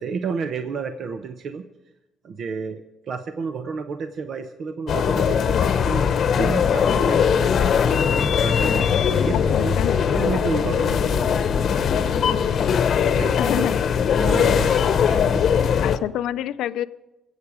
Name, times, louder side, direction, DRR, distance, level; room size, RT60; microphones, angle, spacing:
voice 1, 0.0-1.6 2.2-6.1 6.4-8.9 9.2-9.8 10.1-11.3 13.1-13.4 14.2-15.7, right 5 dB, 60° right, 0.8 m, -31 dB
sound 1, 4.9-16.0, left 7 dB, 60° left, 0.9 m, -20 dB
voice 2, 9.3-9.9 13.4-13.8 15.8-16.9, left 12 dB, 85° left, 0.4 m, -27 dB
24.0 x 8.2 x 4.9 m
cardioid pair, 90°, 0 cm